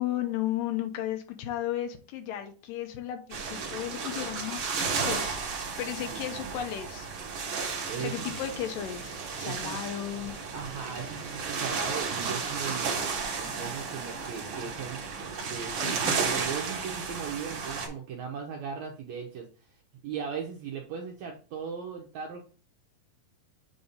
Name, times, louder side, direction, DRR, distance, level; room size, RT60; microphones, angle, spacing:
voice 1, 0.0-7.1 8.0-10.4, left 12 dB, 80° left, 2.3 m, -34 dB
sound 1, 3.3-17.9, right 5 dB, 65° right, 1.3 m, -33 dB
voice 2, 6.1-6.5 7.8-8.3 9.4-9.8 10.5-13.0 13.3-15.0 15.4-19.7 20.0-22.4, right 6 dB, 80° right, 1.6 m, -38 dB
7.8 x 2.7 x 5.1 m
omnidirectional pair, 4.1 m